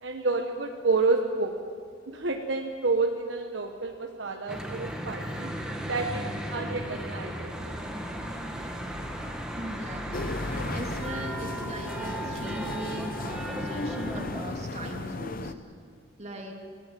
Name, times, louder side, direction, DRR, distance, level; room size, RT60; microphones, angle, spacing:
voice 1, 0.0-1.6 2.1-5.5 5.9-7.8 16.3-16.4, right 3 dB, 65° right, 3 dB, 1.2 m, -29 dB
Church bell / Traffic noise roadway noise, 4.5-14.4, equal, 5° right, 2.0 m, -35 dB
voice 2, 9.6-15.5 16.2-16.5, right 1 dB, 35° right, 1 dB, 2.8 m, -39 dB
sound 1, 10.1-15.5, left 2 dB, 45° left, 0.9 m, -36 dB
23.0 x 17.0 x 7.6 m, 2.2 s
head